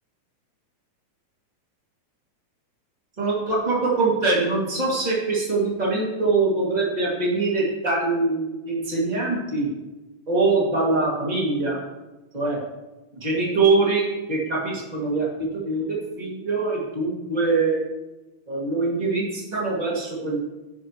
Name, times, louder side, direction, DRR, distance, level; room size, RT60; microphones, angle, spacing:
voice 1, 3.2-9.7 10.3-11.8 12.3-12.6 13.2-17.8 18.5-20.4, right 3 dB, 15° right, -5 dB, 2.0 m, -23 dB
11.5 x 7.1 x 3.1 m, 1.1 s
omnidirectional pair, 3.4 m